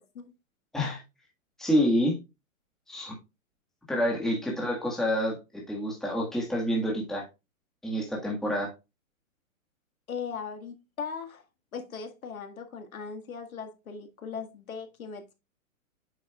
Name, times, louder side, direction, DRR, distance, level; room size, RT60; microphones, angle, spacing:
voice 1, 1.6-2.1 2.9-3.1 3.9-7.2 7.8-8.7, equal, ahead, 1.6 m, -28 dB
voice 2, 10.1-11.4 11.7-15.3, left 6 dB, 85° left, 1.9 m, -38 dB
8.8 x 6.2 x 2.3 m
hypercardioid pair, 150°, 41 cm